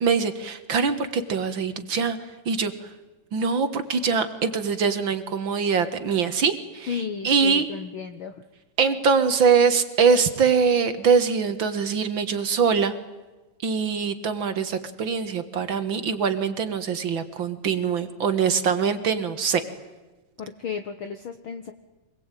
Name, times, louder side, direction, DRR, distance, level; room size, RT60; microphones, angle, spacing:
voice 1, 0.0-2.2 2.4-2.7 3.3-6.9 7.2-7.6 8.8-12.9 13.6-19.6, right 6 dB, 50° right, 10 dB, 1.6 m, -23 dB
voice 2, 6.9-8.4 20.4-21.7, left 6 dB, 60° left, 7 dB, 1.4 m, -33 dB
26.0 x 20.5 x 9.2 m, 1.2 s
omnidirectional pair, 3.9 m